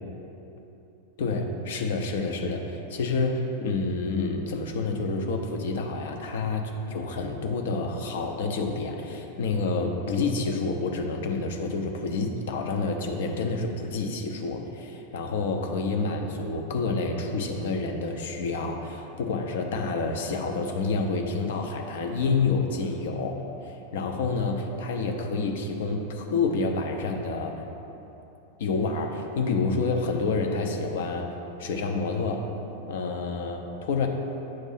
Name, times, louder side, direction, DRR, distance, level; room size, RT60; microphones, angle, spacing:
voice 1, 1.2-27.6 28.6-31.3 31.6-32.5 32.9-34.1, left 3 dB, 55° left, 3 dB, 0.6 m, -28 dB
7.5 x 2.6 x 5.7 m, 3.0 s
figure-of-eight pair, 90°, 0 cm